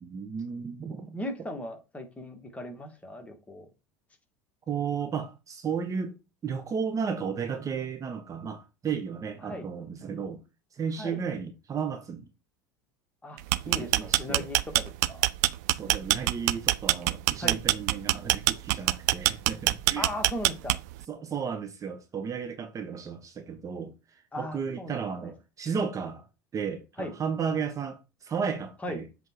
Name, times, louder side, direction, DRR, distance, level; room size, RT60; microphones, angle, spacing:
voice 1, 0.0-1.2 4.7-6.2 6.4-10.4 10.7-12.3 13.6-14.5 15.7-20.1 21.1-23.9 24.4-26.3 26.5-29.1, right 6 dB, 30° right, 1.2 m, -33 dB
voice 2, 1.1-3.7 9.4-9.7 11.0-11.2 13.2-13.4 13.7-15.3 17.4-17.6 20.0-20.8 24.3-25.3 27.0-27.1 28.8-29.0, left 1 dB, 15° left, 2.2 m, -37 dB
sound 1, 13.4-21.0, right 17 dB, 65° right, 0.5 m, -24 dB
7.4 x 3.6 x 4.8 m
hypercardioid pair, 80°, 10 cm